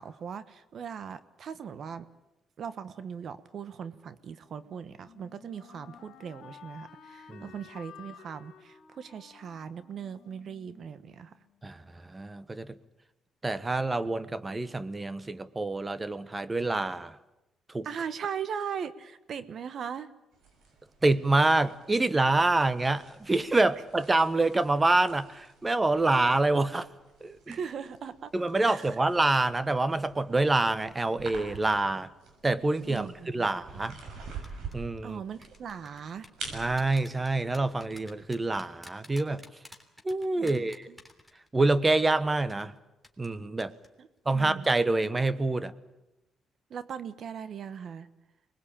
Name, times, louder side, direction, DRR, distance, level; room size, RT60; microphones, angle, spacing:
voice 1, 0.0-2.1 2.6-11.3 17.8-20.1 27.5-28.3 28.6-29.0 32.9-33.5 33.7-33.8 35.0-36.3 40.4-41.0 44.0-44.1 44.3-44.8 46.7-48.1, right 7 dB, 60° right, 13 dB, 1.1 m, -39 dB
Wind instrument woodwind instrument, 4.6-11.5, left 8 dB, 75° left, 2.2 m, -53 dB
voice 2, 12.1-12.8 13.4-17.1 17.7-17.9 21.0-26.9 27.2-27.6 28.3-32.1 32.4-33.9 34.7-35.2 36.5-39.4 40.0-40.9 41.5-42.7 43.2-43.7 44.2-45.7, right 2 dB, 20° right, 15 dB, 1.2 m, -26 dB
sound 1, 20.3-38.6, right 4 dB, 80° right, 6.9 m, -48 dB
sound 2, 34.4-34.7 35.4-41.7 42.0-42.1 42.5-42.6 43.0-43.3 43.6-43.9 44.2-44.3, left 1 dB, 5° right, 3.4 m, -50 dB
24.0 x 20.5 x 8.7 m, 0.96 s
cardioid pair, 90°, 0 cm